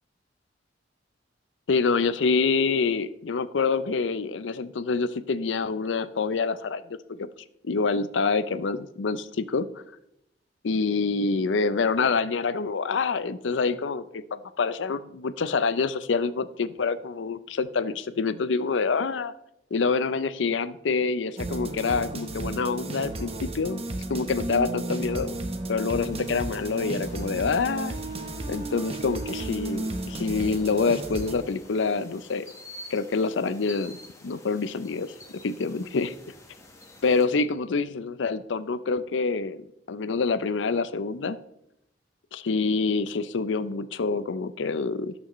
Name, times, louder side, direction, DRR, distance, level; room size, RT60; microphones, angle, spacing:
voice 1, 1.7-7.3 7.6-9.7 10.6-19.3 19.7-23.8 24.1-25.4 25.7-27.9 28.5-32.5 32.9-33.9 34.2-35.1 35.4-36.1 37.0-41.4 42.3-45.1, left 4 dB, 85° left, 14 dB, 0.5 m, -26 dB
sound 1, 21.4-31.3, right 2 dB, 35° right, 0.9 m, -33 dB
sound 2, 26.1-37.2, left 2 dB, 15° left, 1.3 m, -49 dB
17.5 x 6.2 x 3.1 m, 0.80 s
head